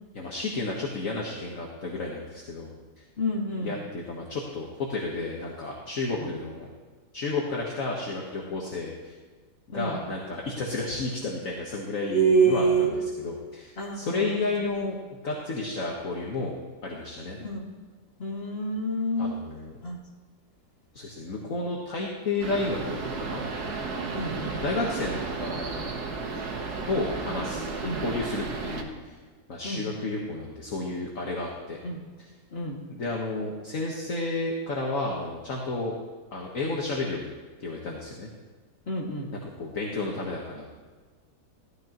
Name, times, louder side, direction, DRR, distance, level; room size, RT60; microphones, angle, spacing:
voice 1, 0.1-2.7 3.6-6.7 7.1-9.1 9.7-12.9 13.2-15.0 15.2-16.5 16.8-17.4 19.2-19.8 20.9-23.4 23.9-24.2 24.6-25.9 26.9-29.1 29.5-31.8 32.9-35.9 36.3-37.3 37.6-38.3 39.6-40.7, left 3 dB, 55° left, -2 dB, 1.7 m, -32 dB
voice 2, 3.2-3.7 6.2-6.3 9.7-10.0 12.1-13.0 13.8-14.9 17.4-17.6 18.2-19.4 19.8-20.0 24.1-24.6 27.8-28.0 29.6-29.8 31.8-32.0 32.5-32.8 38.9-39.3, right 3 dB, 35° left, -3 dB, 2.3 m, -27 dB
sound 1, 22.4-28.8, right 4 dB, 70° right, 1.8 m, -33 dB
15.5 x 13.0 x 3.0 m, 1.5 s
omnidirectional pair, 1.8 m